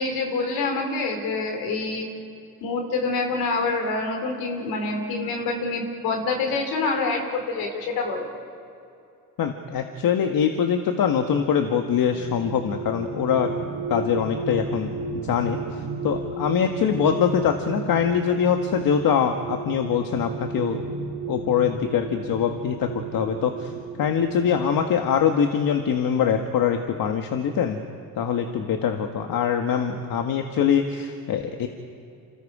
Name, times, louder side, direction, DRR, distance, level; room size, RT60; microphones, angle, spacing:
voice 1, 0.0-2.1 2.6-8.3, left 3 dB, 85° left, 3 dB, 4.3 m, -26 dB
voice 2, 9.4-13.5 13.9-14.9 15.2-15.6 16.0-20.8 21.3-23.7 24.0-27.8 28.2-31.7, left 7 dB, 70° left, 5 dB, 1.6 m, -23 dB
sound 1, 11.9-24.7, right 3 dB, 70° right, 2.4 m, -33 dB
30.0 x 27.5 x 5.0 m, 2.6 s
supercardioid pair, 75°, 36 cm